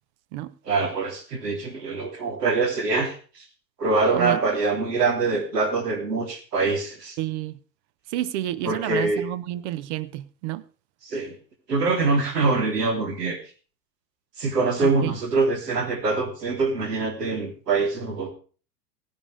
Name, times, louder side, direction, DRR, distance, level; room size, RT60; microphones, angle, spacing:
voice 1, 0.7-3.4 3.8-7.1 8.6-9.2 11.0-11.4 11.7-13.4 14.4-18.3, right 3 dB, 70° right, 3.3 m, -24 dB
voice 2, 7.2-7.6 8.1-10.6 14.8-15.2, right 14 dB, 45° right, 0.9 m, -29 dB
16.5 x 11.0 x 3.3 m
figure-of-eight pair, 85°, 49 cm